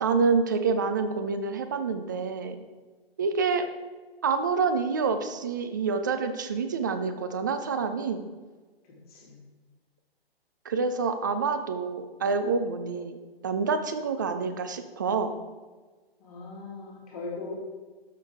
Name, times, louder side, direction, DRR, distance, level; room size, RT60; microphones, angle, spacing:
voice 1, 0.0-2.6 3.2-3.7 4.2-8.3 10.7-13.2 13.4-15.4, right 5 dB, 20° right, 8 dB, 0.4 m, -27 dB
voice 2, 8.9-9.4 16.2-17.5, left 3 dB, 35° left, -3 dB, 2.3 m, -39 dB
12.0 x 6.6 x 3.5 m, 1.3 s
figure-of-eight pair, 125°, 31 cm